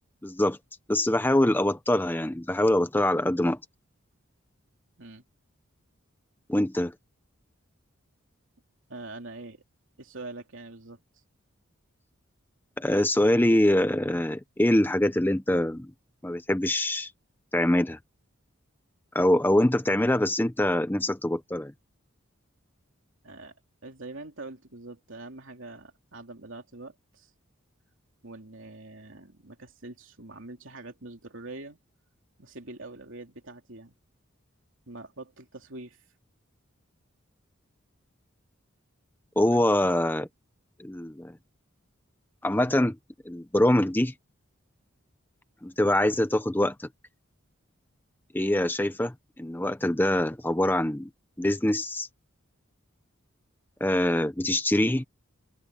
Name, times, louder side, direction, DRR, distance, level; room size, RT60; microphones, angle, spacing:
voice 1, 0.2-0.6 0.9-3.6 6.5-6.9 12.8-15.9 16.2-17.1 17.5-18.0 19.1-21.7 39.4-40.3 40.8-41.3 42.4-43.0 43.3-44.1 45.6-46.9 48.3-51.1 51.4-52.1 53.8-55.0, left 1 dB, 10° left, 0.7 m, -24 dB
voice 2, 8.9-9.6 10.0-11.0 23.2-23.5 23.8-27.3 28.2-31.8 32.4-34.0 34.9-36.0 39.5-39.6, right 2 dB, 65° right, 3.1 m, -44 dB
open air
head